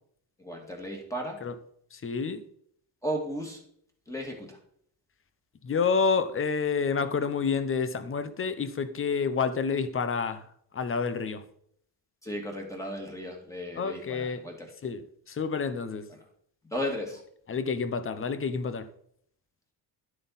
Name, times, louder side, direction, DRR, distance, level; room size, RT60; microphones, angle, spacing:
voice 1, 0.4-1.4 3.0-3.6 4.1-4.6 12.2-14.7 16.1-16.2 16.7-17.2, equal, 5° left, 2.2 m, -35 dB
voice 2, 1.9-2.4 5.6-10.4 10.7-11.4 13.8-14.4 14.8-15.0 15.3-16.0 17.5-18.9, left 5 dB, 25° left, 0.8 m, -28 dB
11.5 x 7.6 x 4.1 m
cardioid pair, 155°, 47 cm